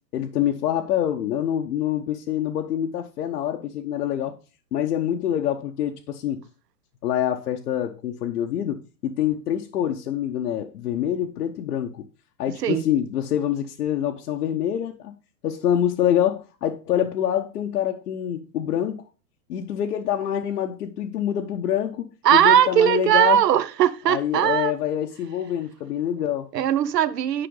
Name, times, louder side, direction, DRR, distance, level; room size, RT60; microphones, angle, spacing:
voice 1, 0.1-4.4 4.7-6.4 7.0-12.0 12.4-15.1 15.4-19.0 19.5-23.4 24.1-26.5, left 10 dB, 70° left, 1.0 m, -26 dB
voice 2, 22.2-24.7 26.5-27.5, right 10 dB, 80° right, 0.8 m, -19 dB
10.0 x 5.0 x 3.8 m
hypercardioid pair, 135°, 48 cm